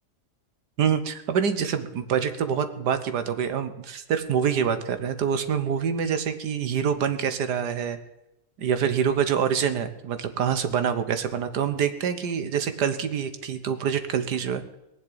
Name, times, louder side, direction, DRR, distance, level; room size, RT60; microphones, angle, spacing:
voice 1, 0.8-8.0 8.6-14.6, right 7 dB, 80° right, 10 dB, 1.7 m, -26 dB
19.5 x 7.4 x 8.7 m, 0.92 s
omnidirectional pair, 1.8 m